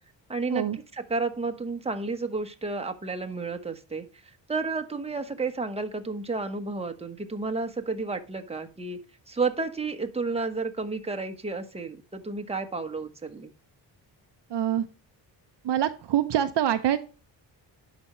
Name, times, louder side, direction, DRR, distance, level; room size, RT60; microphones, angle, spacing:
voice 1, 0.3-4.0 4.5-9.0 9.3-13.5, right 3 dB, 15° right, 5 dB, 1.2 m, -31 dB
voice 2, 14.5-14.8 15.6-17.0, right 10 dB, 60° right, 10 dB, 0.7 m, -25 dB
11.5 x 5.2 x 3.1 m, 0.34 s
cardioid pair, 95°, 46 cm